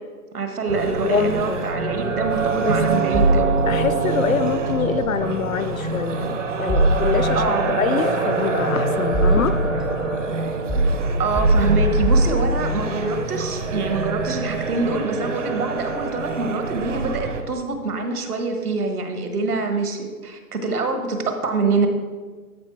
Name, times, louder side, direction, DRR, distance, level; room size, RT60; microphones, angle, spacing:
voice 1, 0.3-3.6 7.3-7.8 11.2-21.9, right 3 dB, 70° right, 6 dB, 1.6 m, -25 dB
sound 1, 0.7-17.4, right 4 dB, 50° right, 0.9 m, -25 dB
voice 2, 1.0-1.7 2.6-2.8 3.7-10.4, left 7 dB, 60° left, 13 dB, 0.6 m, -25 dB
sound 2, 3.1-4.0 6.7-7.6 8.5-9.8 10.7-12.9, right 1 dB, ahead, 0.4 m, -20 dB
13.0 x 4.5 x 4.6 m, 1.4 s
hypercardioid pair, 180°, 47 cm